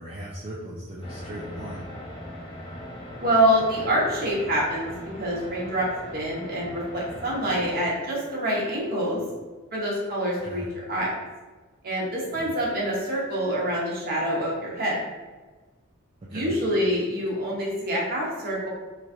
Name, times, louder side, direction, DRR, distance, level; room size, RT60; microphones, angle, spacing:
voice 1, 0.0-1.9 10.4-10.7 12.3-12.5 16.2-16.6, right 1 dB, 25° right, -6 dB, 0.3 m, -38 dB
sound 1, 1.0-7.8, left 1 dB, 25° left, 0.6 m, -40 dB
voice 2, 3.2-4.9 5.2-5.9 6.1-9.2 9.7-11.1 11.8-15.0 16.3-18.7, equal, 45° right, -5 dB, 0.9 m, -26 dB
3.0 x 2.4 x 2.6 m, 1.3 s
head